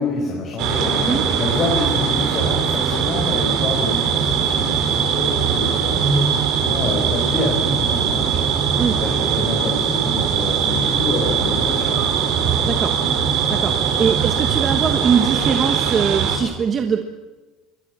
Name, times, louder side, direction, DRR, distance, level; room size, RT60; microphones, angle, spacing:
voice 1, 0.0-8.5 9.0-12.0, left 3 dB, 40° left, 0 dB, 4.9 m, -27 dB
sound 1, 0.6-16.4, right 7 dB, 60° right, 4.2 m, -20 dB
voice 2, 12.6-13.0 13.5-17.0, right 7 dB, 30° right, 6 dB, 1.3 m, -22 dB
26.0 x 22.5 x 6.2 m, 1.2 s
cardioid pair, 155°, 0 cm